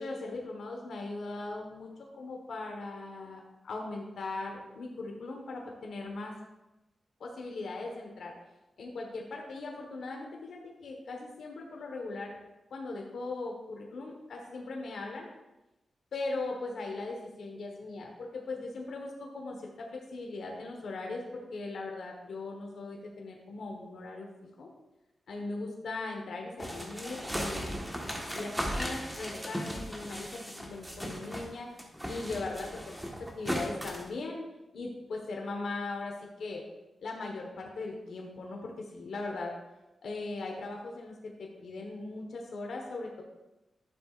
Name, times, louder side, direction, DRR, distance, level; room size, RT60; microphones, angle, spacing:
voice 1, 0.0-1.9 2.1-6.3 7.2-8.3 8.8-12.3 12.7-15.3 16.1-24.3 24.6-24.7 25.3-27.8 28.3-31.8 32.1-34.4 34.7-36.6 37.0-39.5 40.0-43.2, left 3 dB, 80° left, 0 dB, 1.4 m, -39 dB
sound 1, 26.6-31.5 31.8-34.1, equal, 5° right, 1.5 m, -37 dB
11.5 x 6.7 x 2.6 m, 1.0 s
cardioid pair, 95°, 0 cm